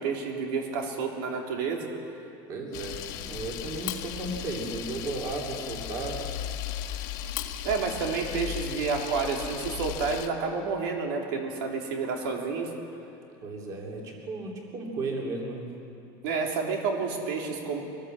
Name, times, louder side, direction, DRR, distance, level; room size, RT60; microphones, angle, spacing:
voice 1, 0.0-1.9 7.6-12.7 16.2-17.8, right 5 dB, 80° right, 1 dB, 3.4 m, -30 dB
voice 2, 2.5-6.2 13.4-15.7, right 2 dB, 30° right, 0 dB, 3.0 m, -34 dB
Camera, 2.7-10.3, left 11 dB, 65° left, 1.6 m, -36 dB
24.5 x 19.0 x 7.8 m, 2.6 s
cardioid pair, 180°, 11 cm